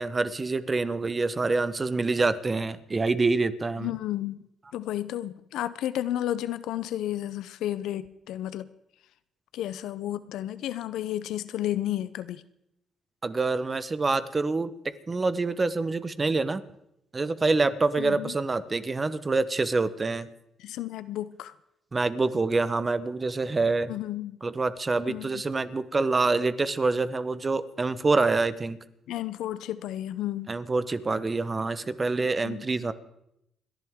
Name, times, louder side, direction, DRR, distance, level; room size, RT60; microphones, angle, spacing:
voice 1, 0.0-3.9 13.2-14.7 15.1-16.6 17.1-20.3 21.9-23.9 24.4-28.8 30.5-32.9, right 3 dB, 25° right, 14 dB, 0.9 m, -26 dB
voice 2, 3.8-4.4 4.7-8.7 9.5-12.4 18.0-18.3 20.6-21.5 23.9-24.4 25.1-25.4 29.1-30.5 32.2-32.7, left 13 dB, 85° left, 15 dB, 0.6 m, -32 dB
28.5 x 11.0 x 3.6 m, 0.80 s
cardioid pair, 90°, 0 cm